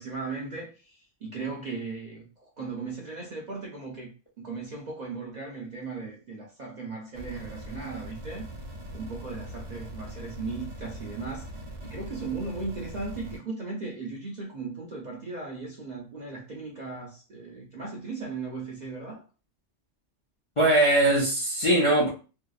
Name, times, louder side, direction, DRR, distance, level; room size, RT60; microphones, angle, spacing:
voice 1, 0.0-4.1 4.4-8.5 8.9-11.5 11.8-19.2, right 4 dB, 55° right, 0.5 m, -37 dB
sound 1, 7.1-13.4, right 1 dB, 85° right, 1.0 m, -41 dB
voice 2, 20.6-22.1, right 1 dB, 45° left, 0.4 m, -21 dB
2.6 x 2.0 x 2.3 m
omnidirectional pair, 1.2 m